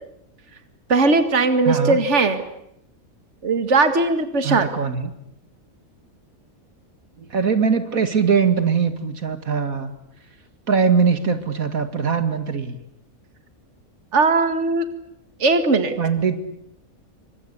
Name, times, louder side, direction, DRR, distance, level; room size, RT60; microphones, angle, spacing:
voice 1, 0.9-2.4 3.4-4.7 14.1-14.9 15.4-15.9, right 3 dB, 55° right, 9 dB, 2.4 m, -18 dB
voice 2, 1.6-2.0 4.4-5.1 7.2-9.9 10.7-12.8 16.0-16.4, right 6 dB, 75° right, 9 dB, 2.6 m, -21 dB
28.0 x 25.0 x 8.4 m, 0.78 s
omnidirectional pair, 1.5 m